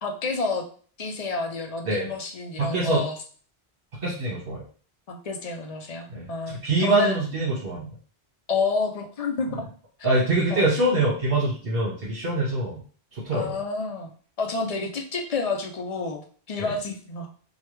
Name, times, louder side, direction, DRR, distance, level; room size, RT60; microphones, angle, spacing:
voice 1, 0.0-0.6 1.0-3.1 5.1-7.2 8.5-9.6 10.5-10.7 13.3-14.1 14.4-17.3, left 4 dB, 50° left, 3 dB, 0.5 m, -29 dB
voice 2, 2.6-3.0 4.0-4.6 6.1-6.3 6.6-7.9 10.0-12.8 13.2-13.6 16.6-16.7, right 2 dB, 60° right, -6 dB, 1.2 m, -24 dB
3.2 x 2.3 x 3.0 m, 0.42 s
omnidirectional pair, 1.1 m